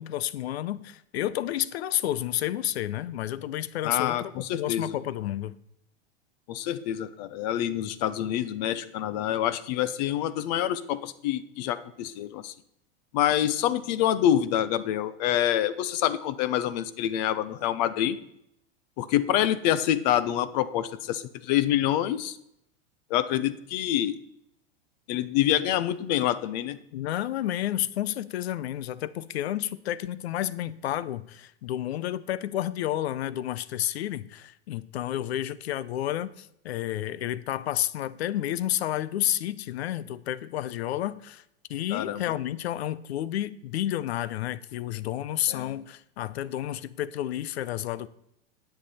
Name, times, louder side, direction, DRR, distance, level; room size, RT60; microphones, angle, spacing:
voice 1, 0.0-5.6 26.9-41.4 41.7-48.1, left 13 dB, 85° left, 18 dB, 0.7 m, -31 dB
voice 2, 3.8-4.9 6.5-12.5 13.1-18.2 19.0-22.4 23.1-24.2 25.1-26.8 41.9-42.2 45.5-45.7, left 11 dB, 45° left, 15 dB, 0.7 m, -26 dB
10.5 x 8.2 x 4.2 m, 0.76 s
supercardioid pair, 160°, 31 cm